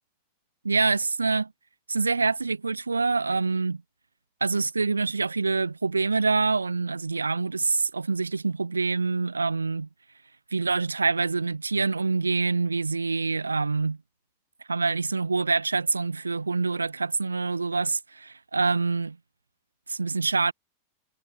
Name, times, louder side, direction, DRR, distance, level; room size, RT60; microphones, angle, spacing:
voice 1, 0.6-1.5 1.9-3.8 4.4-9.9 10.5-14.0 14.7-19.2 19.9-20.5, right 4 dB, 80° right, 0.3 m, -26 dB
figure-of-eight pair, 90°, 0 cm